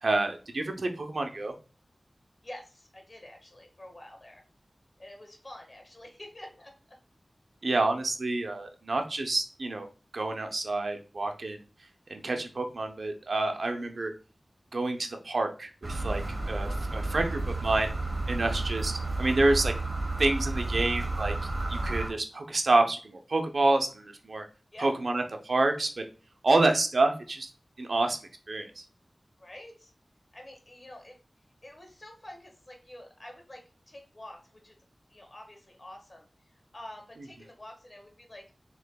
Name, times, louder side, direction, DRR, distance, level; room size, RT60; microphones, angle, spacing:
voice 1, 0.0-1.5 7.6-9.9 10.1-11.6 12.1-14.1 14.7-17.9 18.3-19.7 20.2-21.3 21.7-24.4 24.8-26.1 26.4-27.5 27.8-28.2 28.5-28.8, right 2 dB, 75° right, 5 dB, 0.6 m, -28 dB
voice 2, 2.4-4.4 5.0-6.7 24.7-24.9 29.4-29.9 30.3-31.2 31.6-34.7 35.1-36.3 36.7-38.4, left 1 dB, 45° left, 2 dB, 1.5 m, -47 dB
sound 1, 15.8-22.1, right 2 dB, 40° right, 1.1 m, -31 dB
6.3 x 3.0 x 2.2 m, 0.35 s
cardioid pair, 40°, 0 cm